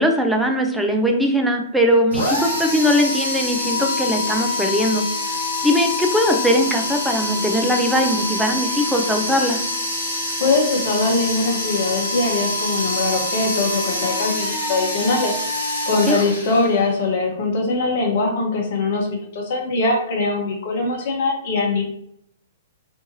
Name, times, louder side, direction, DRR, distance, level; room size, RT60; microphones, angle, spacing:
voice 1, 0.0-5.1 5.6-9.6 16.1-16.2, equal, 5° right, 2 dB, 0.4 m, -20 dB
sound 1, 2.1-17.0, left 2 dB, 80° left, 1.1 m, -25 dB
voice 2, 10.4-15.3 15.8-21.8, left 3 dB, 55° left, 1 dB, 0.9 m, -22 dB
2.7 x 2.5 x 2.6 m, 0.72 s
hypercardioid pair, 120°, 0 cm